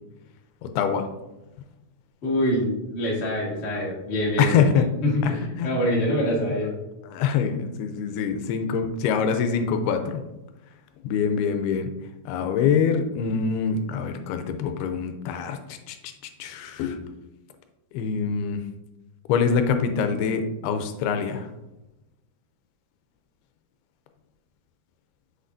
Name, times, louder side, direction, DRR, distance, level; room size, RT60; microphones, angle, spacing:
voice 1, 0.6-1.1 4.4-4.9 5.2-5.3 5.6-5.7 7.1-10.3 11.0-11.9 12.3-15.6 15.9-16.0 16.4-17.1 17.9-18.6 19.3-21.5, left 6 dB, 85° left, 7 dB, 2.6 m, -24 dB
voice 2, 2.2-4.6 5.0-6.7, equal, 50° left, -5 dB, 0.8 m, -25 dB
7.5 x 6.6 x 2.6 m, 0.97 s
omnidirectional pair, 4.5 m